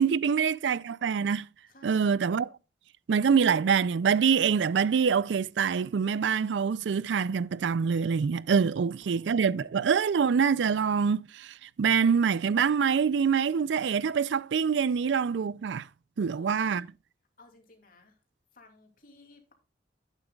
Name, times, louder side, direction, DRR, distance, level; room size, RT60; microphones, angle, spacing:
voice 1, 0.0-1.5 1.8-2.5 3.1-15.9 16.2-16.9, right 6 dB, 85° right, 0.4 m, -25 dB
voice 2, 1.7-2.1 9.0-9.7 16.2-16.8 17.4-18.1 18.5-19.5, left 2 dB, 55° left, 2.7 m, -54 dB
11.5 x 9.0 x 2.3 m
head